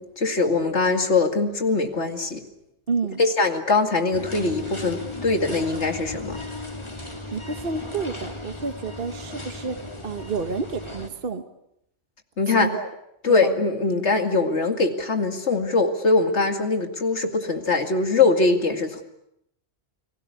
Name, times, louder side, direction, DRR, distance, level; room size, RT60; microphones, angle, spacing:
voice 1, 0.0-2.4 3.2-6.4 12.4-12.7 13.2-19.0, left 3 dB, 85° left, 6 dB, 2.6 m, -22 dB
voice 2, 2.9-3.2 7.3-11.4 12.5-12.9 13.3-13.5, right 4 dB, 55° right, 8 dB, 1.5 m, -30 dB
sound 1, 4.1-11.1, left 2 dB, 25° left, 2.8 m, -36 dB
29.5 x 20.5 x 8.4 m, 0.79 s
omnidirectional pair, 1.1 m